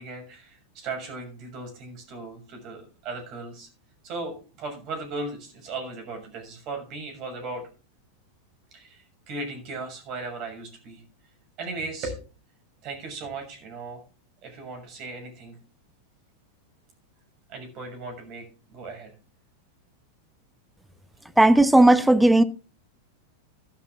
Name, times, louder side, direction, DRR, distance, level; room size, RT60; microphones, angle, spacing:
voice 1, 0.0-3.7 4.0-7.6 8.7-11.0 11.6-12.2 12.8-14.0 14.4-15.5 17.5-18.4 18.7-19.1, right 3 dB, 40° right, 6.6 m, -37 dB
voice 2, 21.4-22.4, right 1 dB, 5° right, 1.0 m, -15 dB
13.0 x 11.5 x 3.7 m
figure-of-eight pair, 90°, 0 cm